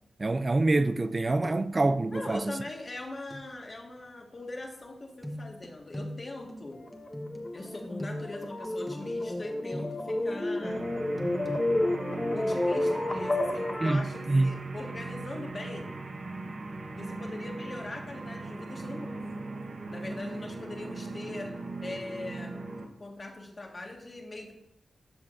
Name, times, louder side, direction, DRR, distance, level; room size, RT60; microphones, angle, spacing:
voice 1, 0.2-2.6 13.8-14.5, right 2 dB, 40° right, 0.3 m, -26 dB
sound 1, 1.1-1.2 1.4-1.8 3.3-3.5 5.2-10.2 11.2-11.6, equal, ahead, 1.3 m, -41 dB
voice 2, 2.1-6.8 7.5-10.9 12.3-15.9 17.0-19.4 19.9-22.5 23.0-24.5, left 2 dB, 45° left, 1.6 m, -41 dB
sound 2, 6.8-14.1, left 1 dB, 25° left, 1.0 m, -31 dB
sound 3, 10.6-22.9, right 3 dB, 70° right, 1.1 m, -39 dB
12.5 x 5.9 x 2.6 m
cardioid pair, 50°, 0 cm